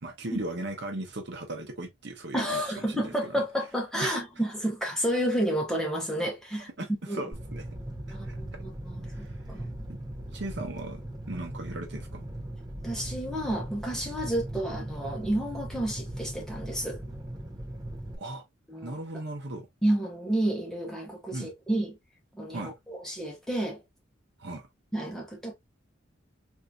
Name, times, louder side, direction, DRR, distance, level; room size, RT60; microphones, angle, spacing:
voice 1, 0.0-3.4 4.0-4.2 6.8-7.6 8.1-8.4 9.1-9.3 9.9-10.0 10.3-11.0 11.3-12.3 18.2-18.4 18.8-19.7 21.3-21.5 22.5-22.7 24.4-24.7, right 2 dB, 60° right, 0.9 m, -37 dB
voice 2, 2.3-6.7 7.1-7.2 8.1-9.7 12.8-17.0 18.7-19.0 19.8-21.9 22.3-23.8 24.9-25.5, right 1 dB, ahead, 1.2 m, -30 dB
Fire, 7.3-18.2, right 1 dB, 20° right, 0.8 m, -39 dB
4.0 x 2.7 x 2.3 m
head